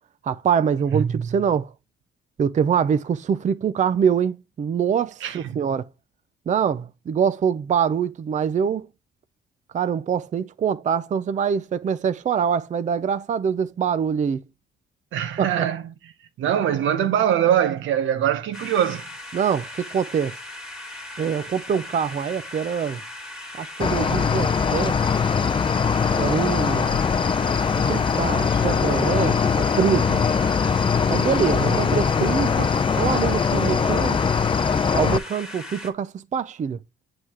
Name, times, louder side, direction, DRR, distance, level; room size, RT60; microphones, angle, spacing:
voice 1, 0.2-1.7 2.4-5.9 6.5-8.9 9.7-14.4 15.4-15.7 19.3-20.3 21.2-23.0 23.6-25.2 26.2-27.0 27.9-30.2 31.1-34.2 34.9-36.8, right 7 dB, 40° right, 0.5 m, -24 dB
voice 2, 0.9-1.4 5.2-5.7 15.1-16.1 16.4-19.1 31.6-31.8, right 10 dB, 80° right, 0.9 m, -23 dB
sound 1, 18.5-35.9, left 1 dB, ahead, 2.0 m, -38 dB
Cricket, 23.8-35.2, left 6 dB, 25° left, 0.4 m, -21 dB
7.8 x 4.8 x 2.9 m
cardioid pair, 90°, 20 cm